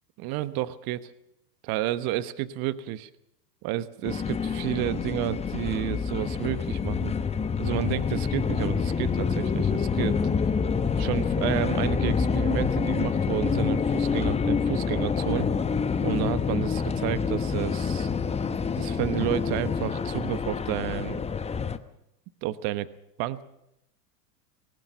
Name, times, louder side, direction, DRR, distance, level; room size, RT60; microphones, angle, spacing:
voice 1, 0.2-1.1 1.6-3.1 3.6-7.1 7.6-10.2 11.0-15.5 16.0-18.1 18.8-21.2 22.4-22.9 23.2-23.4, right 14 dB, 45° right, 15 dB, 1.2 m, -31 dB
sound 1, 4.0-21.8, left 5 dB, 15° left, 0.9 m, -27 dB
20.5 x 18.5 x 6.9 m, 0.82 s
hypercardioid pair, 110°, 48 cm